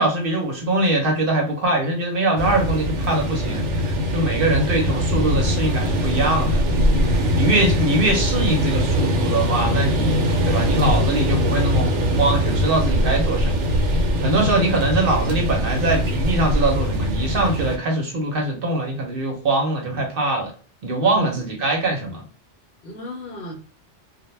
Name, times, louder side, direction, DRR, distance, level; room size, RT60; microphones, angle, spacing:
voice 1, 0.0-6.6 7.3-10.2 10.5-11.9 12.2-13.5 14.2-20.5 20.8-22.2, right 2 dB, 55° right, 1 dB, 0.8 m, -22 dB
sound 1, 2.4-17.8, equal, 80° right, 0.9 m, -21 dB
voice 2, 14.2-14.6 21.0-21.5 22.8-23.5, right 1 dB, 60° left, 2 dB, 0.7 m, -35 dB
2.1 x 2.1 x 3.0 m, 0.39 s
omnidirectional pair, 1.2 m